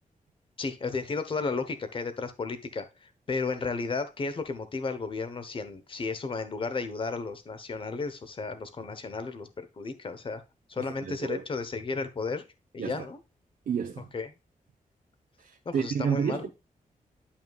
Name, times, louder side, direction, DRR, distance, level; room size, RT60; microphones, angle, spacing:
voice 1, 0.6-10.4 10.7-12.4 12.7-13.2 14.1-14.3 15.6-16.5, left 4 dB, 35° left, 1.0 m, -33 dB
voice 2, 10.8-11.5 12.8-13.1 13.7-14.1 15.4-16.5, right 7 dB, 85° right, 0.9 m, -31 dB
11.0 x 5.7 x 2.3 m
wide cardioid pair, 170°, 15 cm